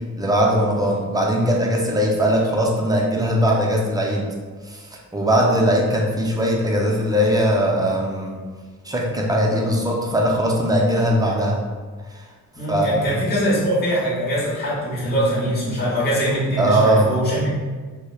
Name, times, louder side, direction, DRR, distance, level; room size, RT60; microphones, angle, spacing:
voice 1, 0.2-4.2 4.7-8.3 8.8-11.6 12.7-13.0 16.6-17.1, equal, 10° right, -1 dB, 0.3 m, -20 dB
voice 2, 12.5-17.5, equal, 30° left, -8 dB, 0.8 m, -22 dB
2.8 x 2.0 x 2.2 m, 1.4 s
cardioid pair, 85°, 33 cm